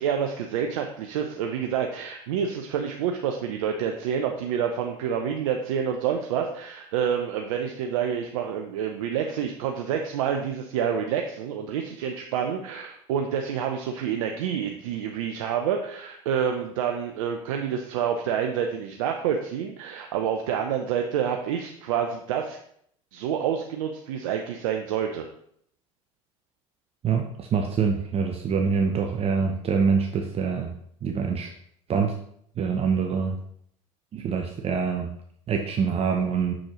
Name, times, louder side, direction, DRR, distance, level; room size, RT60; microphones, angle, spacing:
voice 1, 0.0-22.6 23.1-25.3, right 8 dB, 75° right, 4 dB, 0.6 m, -28 dB
voice 2, 27.0-30.7 31.0-31.5 31.9-32.1 32.6-33.4 34.1-35.1 35.5-36.5, right 6 dB, 35° right, 3 dB, 0.8 m, -25 dB
6.3 x 6.2 x 3.0 m, 0.68 s
hypercardioid pair, 80°, 17 cm